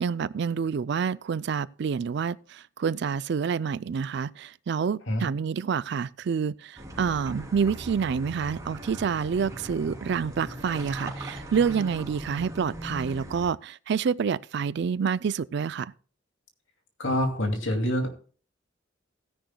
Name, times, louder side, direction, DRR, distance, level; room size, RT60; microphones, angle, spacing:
voice 1, 0.0-15.9, right 6 dB, 60° right, 0.4 m, -28 dB
sound 1, 6.8-13.5, right 1 dB, 20° right, 3.0 m, -39 dB
voice 2, 17.0-18.1, equal, 85° left, 2.5 m, -26 dB
16.5 x 10.0 x 2.2 m
head